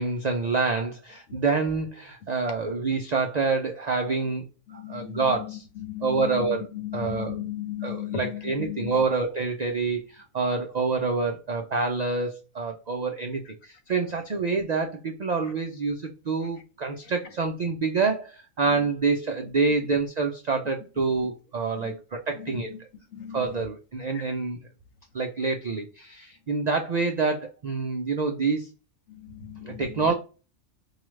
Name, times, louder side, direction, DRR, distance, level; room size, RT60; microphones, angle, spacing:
voice 1, 0.0-4.4 4.7-5.6 6.0-6.7 6.9-7.4 7.8-22.7 23.3-24.6 25.1-28.7 29.6-30.1, right 4 dB, 75° right, 0.3 m, -27 dB
voice 2, 4.7-9.0 21.8-21.9 22.4-22.6 23.1-23.5 24.1-24.3 29.1-30.1, left 11 dB, 85° left, 1.2 m, -36 dB
4.7 x 2.3 x 3.1 m
omnidirectional pair, 1.4 m